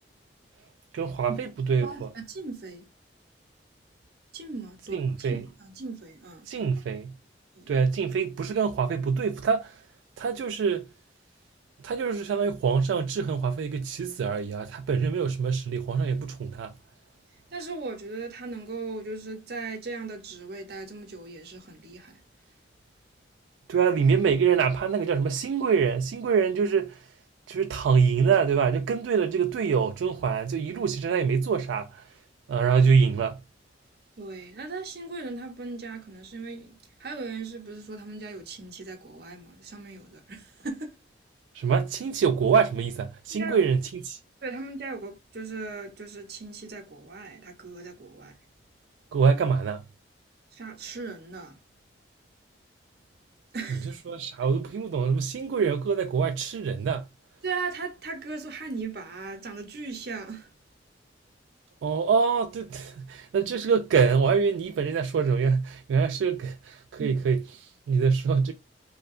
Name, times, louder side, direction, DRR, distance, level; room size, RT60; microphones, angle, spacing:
voice 1, 0.9-2.1 4.9-5.5 6.5-7.1 7.7-9.8 10.2-10.9 11.8-16.7 23.7-27.1 27.5-32.2 32.5-33.4 41.5-44.2 49.1-49.8 53.7-57.1 61.8-68.5, right 6 dB, 85° right, 0.3 m, -25 dB
voice 2, 1.8-2.9 4.3-6.5 7.5-7.7 17.5-22.2 34.2-41.0 43.3-43.6 44.4-48.4 50.5-51.6 53.5-53.9 57.4-60.5 67.0-67.2, right 3 dB, 55° right, 0.7 m, -38 dB
2.7 x 2.2 x 2.4 m
head